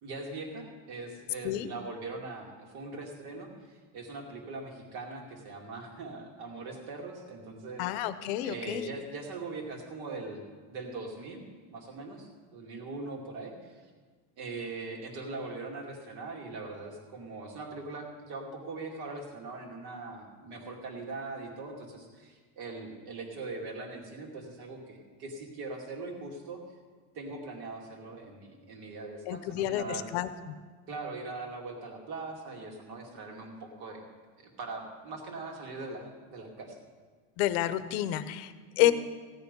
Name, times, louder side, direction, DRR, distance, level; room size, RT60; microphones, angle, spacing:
voice 1, 0.0-8.1 8.4-13.8 14.4-26.6 27.1-30.1 30.9-34.0 34.4-36.8 38.8-38.9, right 3 dB, 50° right, 1 dB, 2.4 m, -41 dB
voice 2, 7.8-8.8 29.3-30.5 37.4-38.9, left 13 dB, 65° left, 13 dB, 0.8 m, -29 dB
16.0 x 9.6 x 5.3 m, 1.5 s
cardioid pair, 180°, 34 cm